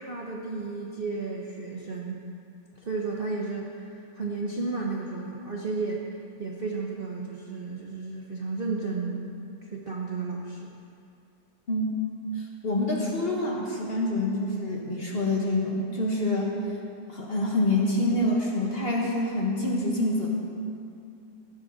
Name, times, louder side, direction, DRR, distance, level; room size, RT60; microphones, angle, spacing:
voice 1, 0.0-2.2 2.7-9.3 9.6-10.7, right 3 dB, 45° right, -2 dB, 0.8 m, -33 dB
voice 2, 12.4-16.5 17.1-20.3, left 1 dB, 35° left, -2 dB, 1.6 m, -26 dB
16.0 x 9.8 x 4.0 m, 2.5 s
omnidirectional pair, 1.8 m